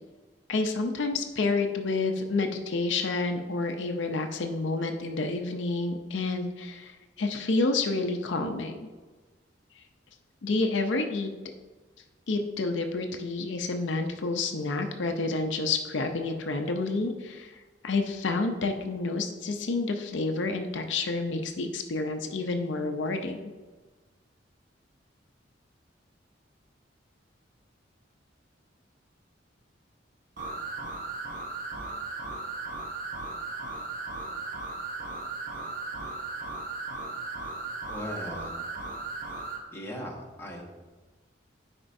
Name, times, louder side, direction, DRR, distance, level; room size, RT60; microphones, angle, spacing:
voice 1, 0.5-8.8 10.4-11.3 12.3-23.4, left 3 dB, 75° left, 5 dB, 0.5 m, -29 dB
sound 1, 30.4-39.6, right 3 dB, 45° right, 0.8 m, -36 dB
voice 2, 37.9-38.6 39.7-40.6, equal, 15° left, -2 dB, 1.1 m, -38 dB
10.0 x 4.4 x 2.6 m, 1.3 s
head